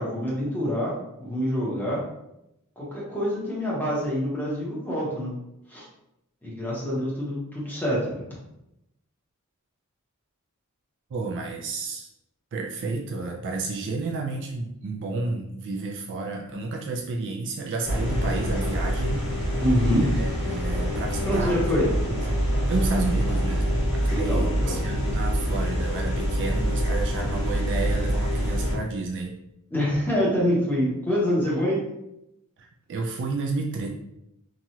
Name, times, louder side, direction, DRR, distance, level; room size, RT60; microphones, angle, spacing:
voice 1, 0.0-2.0 2.8-5.3 5.7-5.8 6.4-8.2 19.6-20.1 21.3-21.9 24.1-24.8 29.7-31.8, equal, 10° left, -6 dB, 0.9 m, -26 dB
voice 2, 11.1-12.1 12.5-19.6 20.1-21.6 22.1-22.2 22.7-29.4 32.6-33.9, right 3 dB, 55° right, 1 dB, 0.3 m, -31 dB
sound 1, 17.8-28.7, equal, 80° left, 1.3 m, -25 dB
2.9 x 2.3 x 2.8 m, 0.85 s
head